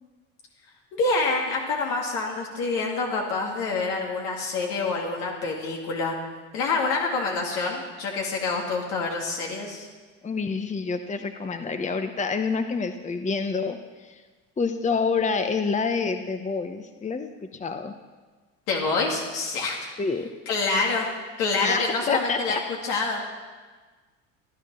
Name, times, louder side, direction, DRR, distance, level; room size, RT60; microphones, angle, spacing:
voice 1, 0.9-6.2 6.5-9.9 18.7-19.8 20.5-21.1 21.4-22.6 22.8-23.2, left 3 dB, 75° left, -1 dB, 2.5 m, -26 dB
voice 2, 10.2-14.2 14.6-17.9 20.0-20.3 21.6-22.6, left 4 dB, 20° left, 7 dB, 0.9 m, -27 dB
14.5 x 11.0 x 6.2 m, 1.4 s
hypercardioid pair, 80°, 38 cm